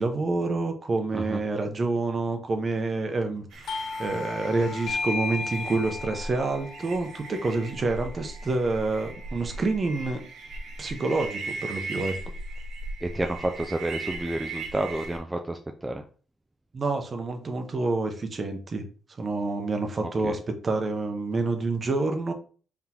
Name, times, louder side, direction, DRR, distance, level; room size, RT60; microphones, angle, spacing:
voice 1, 0.0-10.2 10.8-12.1 16.7-18.8 19.2-22.3, right 3 dB, 35° right, 5 dB, 0.7 m, -28 dB
sound 1, 3.5-15.2, right 2 dB, 75° right, 1.0 m, -39 dB
Doorbell, 3.7-9.0, left 4 dB, 65° left, 0.5 m, -35 dB
voice 2, 13.0-16.0 20.0-20.4, right 1 dB, 10° right, 4 dB, 0.4 m, -30 dB
4.0 x 3.5 x 2.9 m, 0.41 s
cardioid pair, 90°, 0 cm